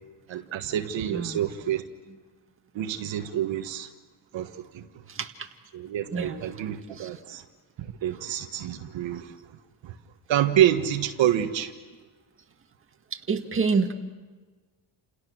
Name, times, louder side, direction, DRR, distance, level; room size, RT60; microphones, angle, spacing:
voice 1, 0.3-1.8 2.7-3.9 4.3-4.9 5.7-7.4 7.8-9.3 9.8-9.9 10.3-11.7, right 11 dB, 65° right, 6 dB, 1.6 m, -27 dB
voice 2, 1.1-1.5 5.1-5.5 6.1-6.4 6.9-7.2 13.1-13.9, right 5 dB, 25° right, 4 dB, 1.9 m, -28 dB
29.5 x 28.5 x 6.4 m, 1.3 s
cardioid pair, 150°, 49 cm